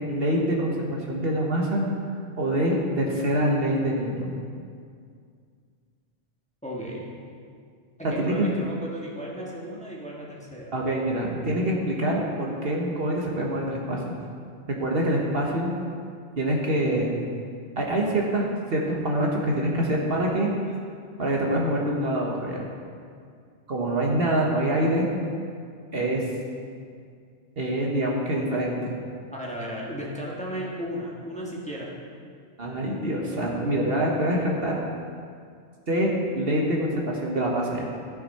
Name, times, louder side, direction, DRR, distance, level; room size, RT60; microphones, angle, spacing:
voice 1, 0.1-1.8 2.4-4.4 8.0-8.5 10.7-14.1 14.7-15.7 16.4-17.2 17.8-20.5 21.2-22.6 23.7-25.1 25.9-26.2 27.6-28.9 32.6-34.7 35.9-37.9, right 1 dB, 55° right, -2 dB, 1.4 m, -25 dB
voice 2, 6.6-7.1 8.0-10.7 29.3-31.9, equal, 5° left, -4 dB, 1.4 m, -35 dB
15.0 x 6.2 x 4.2 m, 2.2 s
omnidirectional pair, 1.2 m